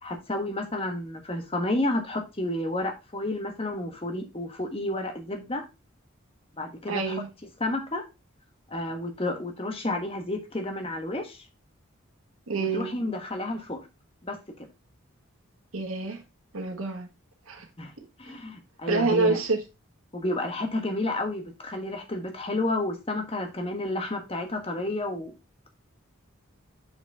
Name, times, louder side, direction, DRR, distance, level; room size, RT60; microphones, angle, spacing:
voice 1, 0.0-5.6 6.6-7.2 7.6-8.0 8.7-11.5 12.6-13.8 14.2-14.4 17.8-17.9 18.2-19.4 20.1-25.3, left 2 dB, 25° left, 1.4 m, -31 dB
voice 2, 6.9-7.3 12.5-12.9 15.7-16.2 16.5-17.1 17.5-17.6 18.9-19.6, right 3 dB, 85° right, 1.5 m, -27 dB
7.0 x 5.5 x 3.4 m
head